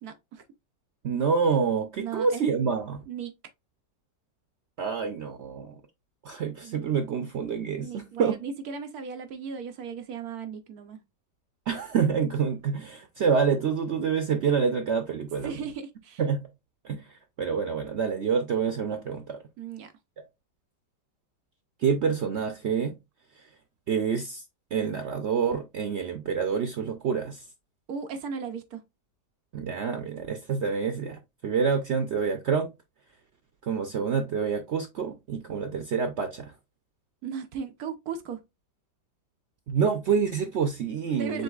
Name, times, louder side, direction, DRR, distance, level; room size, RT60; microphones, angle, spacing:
voice 1, 0.0-0.4 2.0-2.4 3.1-3.3 6.6-6.9 7.8-11.0 15.4-16.2 19.6-19.9 27.9-28.8 37.2-38.4 41.2-41.4, right 6 dB, 65° right, 1.0 m, -36 dB
voice 2, 1.0-3.0 4.8-5.8 6.2-8.4 11.7-15.5 16.2-16.5 16.8-19.4 20.2-20.3 21.8-23.0 23.4-23.5 23.9-24.4 24.7-27.5 29.5-32.7 33.6-36.5 39.7-41.4, right 6 dB, 90° right, 0.6 m, -27 dB
5.4 x 3.9 x 2.3 m
omnidirectional pair, 1.9 m